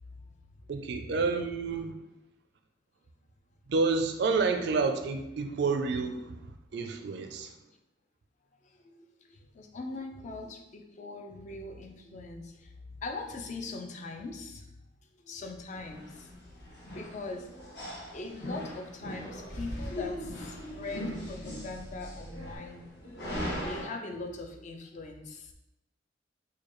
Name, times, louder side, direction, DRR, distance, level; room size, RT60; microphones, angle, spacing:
voice 1, 0.7-1.9 3.7-7.5, right 4 dB, 60° right, 6 dB, 0.4 m, -29 dB
voice 2, 8.6-14.7 15.2-16.3 16.9-17.5 18.1-22.9 23.6-25.5, left 3 dB, 40° left, 4 dB, 0.4 m, -41 dB
sound 1, 15.7-23.9, left 1 dB, 60° left, 0.9 m, -40 dB
Car / Engine starting / Idling, 19.1-22.6, equal, 75° left, 1.3 m, -44 dB
4.6 x 2.2 x 3.0 m, 0.89 s
head